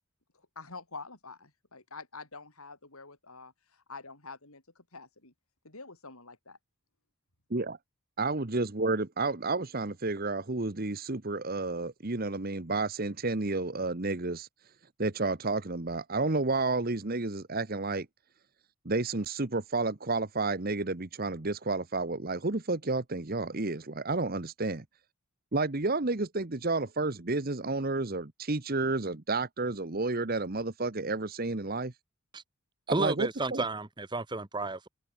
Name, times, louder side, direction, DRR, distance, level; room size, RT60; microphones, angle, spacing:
voice 1, 0.6-5.3 5.6-6.6, left 4 dB, 75° left, 5.4 m, -47 dB
voice 2, 8.2-14.5 15.0-18.1 18.8-24.8 25.5-31.9 32.9-33.6, right 3 dB, 40° right, 1.2 m, -31 dB
voice 3, 32.9-34.9, right 2 dB, 20° right, 1.0 m, -32 dB
head